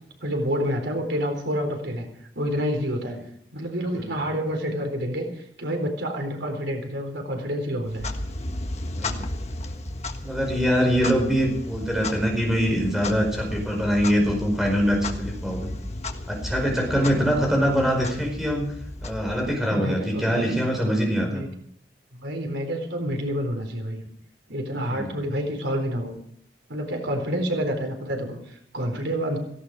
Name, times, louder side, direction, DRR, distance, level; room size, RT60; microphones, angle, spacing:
voice 1, 0.2-2.1 2.4-3.2 3.5-8.1 19.6-20.6 21.2-21.5 22.1-24.0 24.5-26.1 26.7-29.4, equal, 90° right, 4 dB, 4.1 m, -28 dB
Clock, 7.8-19.8, left 1 dB, 40° left, 1.4 m, -34 dB
voice 2, 8.9-9.3 10.2-15.7 16.3-18.7 19.0-21.4 24.8-25.2, equal, ahead, 0 dB, 4.8 m, -23 dB
17.0 x 16.0 x 4.8 m, 0.66 s
head